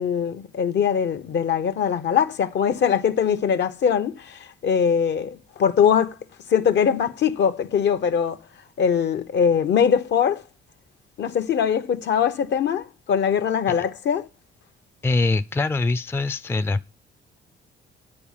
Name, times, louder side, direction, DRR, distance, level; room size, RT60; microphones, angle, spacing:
voice 1, 0.0-6.1 6.5-8.4 8.8-10.4 11.2-14.3, left 7 dB, 60° left, 0.9 m, -22 dB
voice 2, 15.0-16.9, left 3 dB, 10° left, 0.4 m, -23 dB
10.0 x 4.2 x 7.3 m
cardioid pair, 90°, 20 cm